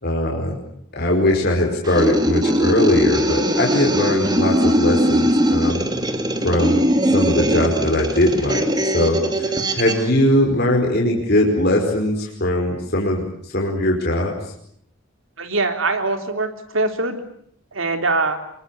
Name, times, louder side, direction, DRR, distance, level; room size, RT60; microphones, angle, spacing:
voice 1, 0.0-0.6 0.9-5.8 6.4-6.8 7.1-8.6 8.9-13.2 13.5-14.3, left 1 dB, 50° left, 0 dB, 5.0 m, -20 dB
sound 1, 1.8-10.0, equal, 20° right, 2.5 m, -20 dB
voice 2, 15.4-17.2 17.7-18.4, right 3 dB, 75° right, 6 dB, 3.6 m, -22 dB
27.5 x 22.5 x 8.5 m, 0.67 s
head